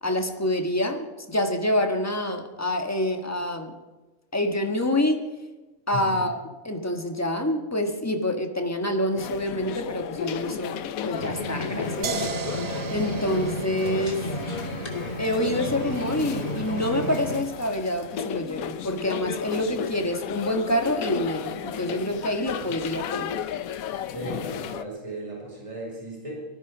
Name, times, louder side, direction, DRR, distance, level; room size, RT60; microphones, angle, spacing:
voice 1, 0.0-3.7 4.3-5.3 5.9-6.4 6.6-12.2 12.9-14.3 15.2-23.4, left 1 dB, 10° left, 4 dB, 1.4 m, -27 dB
voice 2, 5.9-6.2 22.7-22.8 24.1-26.5, equal, 20° right, -3 dB, 5.5 m, -36 dB
sound 1, 9.2-24.8, left 9 dB, 90° left, 1.2 m, -34 dB
sound 2, 11.1-17.4, equal, 50° left, 3.4 m, -33 dB
sound 3, 12.0-17.8, right 6 dB, 60° right, 1.1 m, -37 dB
19.0 x 13.5 x 5.0 m, 1.2 s
omnidirectional pair, 1.4 m